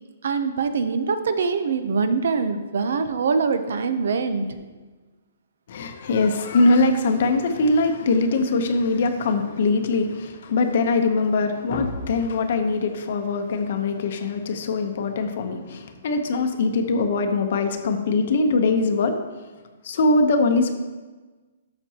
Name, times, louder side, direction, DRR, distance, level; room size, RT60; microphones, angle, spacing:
voice 1, 0.2-4.6, right 5 dB, 60° right, 10 dB, 0.6 m, -24 dB
voice 2, 5.7-19.2 19.8-20.7, left 3 dB, 45° left, 6 dB, 0.8 m, -22 dB
12.5 x 6.0 x 2.9 m, 1.3 s
hypercardioid pair, 175°, 0 cm